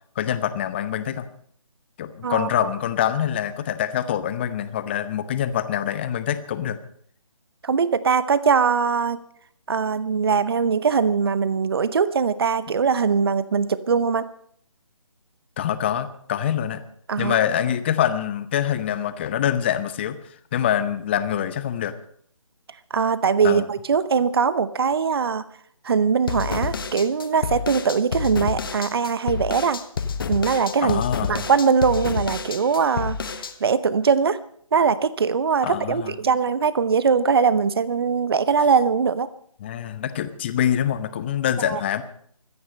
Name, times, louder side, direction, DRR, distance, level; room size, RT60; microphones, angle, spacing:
voice 1, 0.2-1.3 2.0-6.8 15.6-16.8 17.2-21.9 23.4-23.6 30.8-31.4 35.6-36.1 39.6-42.0, left 10 dB, 20° left, 12 dB, 0.9 m, -25 dB
voice 2, 2.2-2.7 7.6-9.2 9.7-14.3 17.1-17.4 22.9-25.4 25.8-29.8 30.3-31.0 31.3-34.4 34.7-39.3 41.7-41.8, right 6 dB, 45° right, 16 dB, 0.8 m, -21 dB
sound 1, 26.3-33.5, left 5 dB, 40° left, 1.4 m, -29 dB
24.5 x 9.6 x 5.4 m, 0.62 s
figure-of-eight pair, 155°, 17 cm